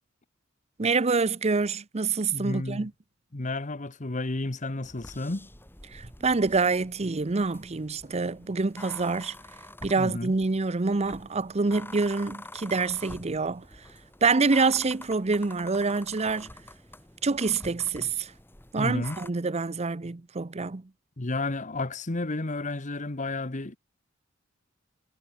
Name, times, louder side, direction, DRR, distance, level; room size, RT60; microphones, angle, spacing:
voice 1, 0.8-2.9 5.9-9.3 9.8-13.6 14.2-16.5 17.2-18.3 18.7-20.8, right 4 dB, 35° right, 0.7 m, -26 dB
voice 2, 2.3-2.9 3.3-5.5 10.0-10.3 18.8-19.2 21.2-23.8, left 2 dB, 40° left, 1.2 m, -31 dB
sound 1, 4.8-19.3, left 1 dB, 10° left, 3.2 m, -47 dB
head